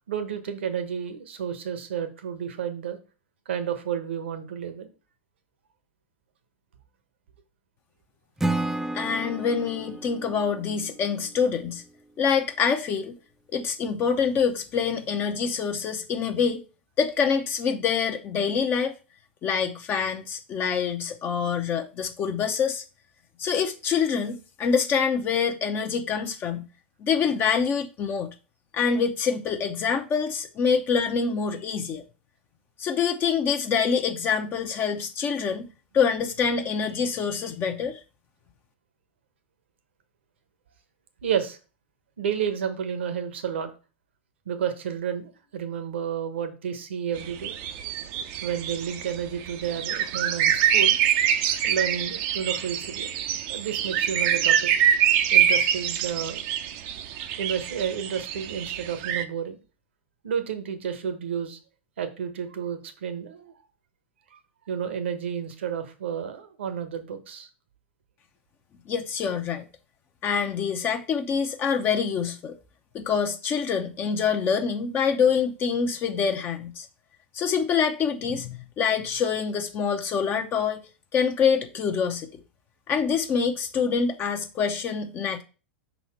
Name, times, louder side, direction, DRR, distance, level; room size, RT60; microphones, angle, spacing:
voice 1, 0.1-3.0 3.5-4.9 41.2-41.6 42.2-43.7 44.5-47.5 48.4-51.0 51.6-53.1 53.5-54.7 55.3-56.4 57.4-59.6 60.2-61.6 62.0-63.5 64.3-64.4 64.7-67.5, right 8 dB, 70° right, 1.1 m, -31 dB
Acoustic guitar / Strum, 8.4-11.6, right 2 dB, 5° right, 0.4 m, -32 dB
voice 2, 8.9-11.8 12.2-13.2 13.5-16.6 17.0-18.9 19.4-22.8 23.4-26.6 27.0-28.3 28.7-32.0 32.8-35.7 35.9-38.0 68.9-69.6 70.2-72.6 72.9-76.9 77.3-80.8 81.1-82.3 82.9-85.4, left 6 dB, 30° left, 0.7 m, -25 dB
sound 1, 47.2-59.2, right 9 dB, 45° right, 0.6 m, -25 dB
5.7 x 4.1 x 4.5 m
figure-of-eight pair, 95°, 6 cm